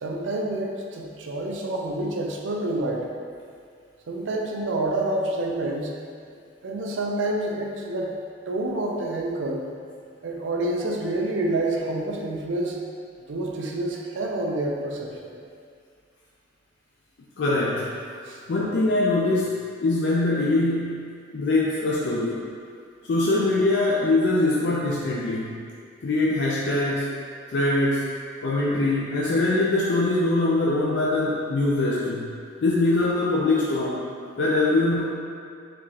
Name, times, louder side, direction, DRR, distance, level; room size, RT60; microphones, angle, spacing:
voice 1, 0.0-3.1 4.1-5.9 6.6-8.1 8.5-9.6 10.2-12.8 13.3-15.3 18.3-18.4, right 2 dB, 85° right, 0 dB, 0.5 m, -28 dB
voice 2, 17.4-17.9 18.5-22.5 23.1-25.6 26.0-27.1 27.5-28.1 28.4-32.3 32.6-34.1 34.4-35.0, left 2 dB, 65° left, -5 dB, 0.4 m, -23 dB
4.2 x 3.0 x 2.7 m, 2.3 s
head